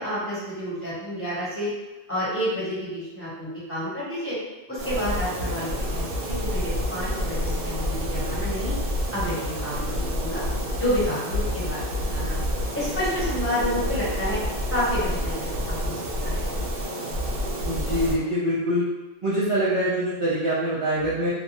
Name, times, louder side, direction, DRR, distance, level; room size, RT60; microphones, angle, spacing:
voice 1, 0.0-1.7 2.1-4.3 4.7-8.7 9.1-10.4 10.7-12.4 12.7-14.4 14.7-15.9 16.2-16.4, equal, 15° left, -11 dB, 1.0 m, -29 dB
sound 1, 4.8-18.1, equal, 75° right, 0.8 m, -28 dB
voice 2, 17.7-18.9 19.2-21.3, equal, 40° right, -9 dB, 0.5 m, -24 dB
2.6 x 2.1 x 2.9 m, 1.1 s
omnidirectional pair, 1.1 m